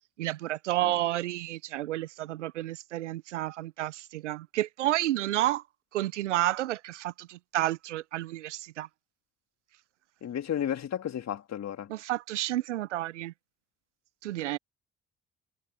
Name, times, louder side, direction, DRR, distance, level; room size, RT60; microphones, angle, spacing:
voice 1, 0.2-5.6 5.9-8.9 11.9-13.3 14.2-14.6, right 15 dB, 90° right, 0.7 m, -30 dB
voice 2, 10.2-11.9, left 9 dB, 50° left, 2.5 m, -33 dB
hypercardioid pair, 50°, 35 cm